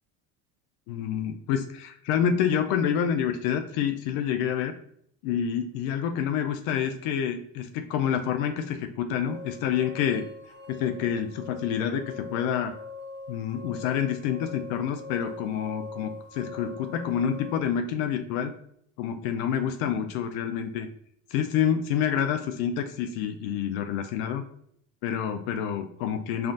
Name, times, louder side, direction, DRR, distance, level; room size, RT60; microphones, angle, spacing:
voice 1, 0.9-4.7 5.2-10.3 10.7-12.8 13.3-18.5 19.0-20.9 21.3-24.4 25.0-26.5, left 8 dB, 85° left, 7 dB, 0.5 m, -28 dB
sound 1, 9.2-17.6, left 3 dB, 45° right, 1.2 m, -42 dB
5.5 x 2.4 x 2.5 m, 0.67 s
cardioid pair, 115°, 33 cm